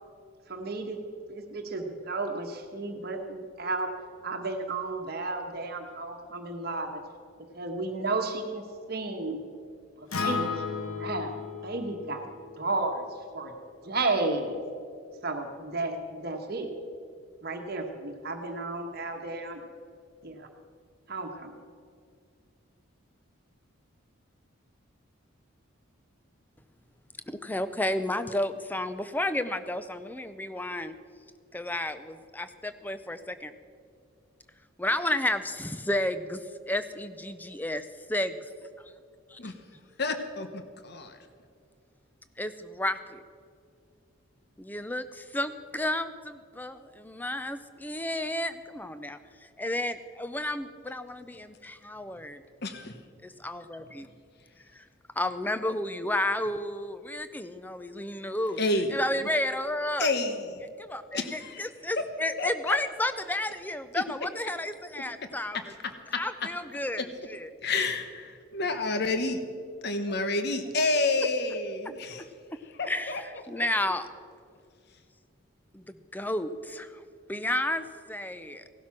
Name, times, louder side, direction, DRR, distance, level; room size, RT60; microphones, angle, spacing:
voice 1, 0.5-1.0 1.3-3.9 4.2-7.0 7.5-8.6 8.9-9.4 10.0-10.6 11.0-11.3 11.6-12.3 12.6-13.1 13.3-13.5 13.8-14.6 15.2-16.7 17.4-19.6 20.2-20.5 21.1-21.5, right 3 dB, 50° right, 3 dB, 1.3 m, -33 dB
Acoustic guitar, 10.1-14.3, left 4 dB, 85° left, 1.6 m, -36 dB
voice 2, 27.3-30.9 31.5-33.5 34.8-38.4 38.8-38.9 42.4-43.2 44.6-52.4 53.4-54.1 54.7-54.9 55.2-58.6 58.9-60.1 60.8-65.6 66.1-67.5 70.1-70.2 71.8-71.9 72.9-74.1 75.7-77.0 77.3-78.6, left 1 dB, 10° left, 11 dB, 0.5 m, -32 dB
voice 3, 40.0-41.2 52.6-52.7 58.6-58.9 60.0-60.4 61.1-61.7 62.4-62.8 65.5-66.2 67.0-67.1 67.6-69.4 69.8-72.2 72.8-73.2 73.6-73.7, left 3 dB, 50° left, 8 dB, 1.0 m, -29 dB
17.0 x 12.0 x 6.0 m, 2.3 s
head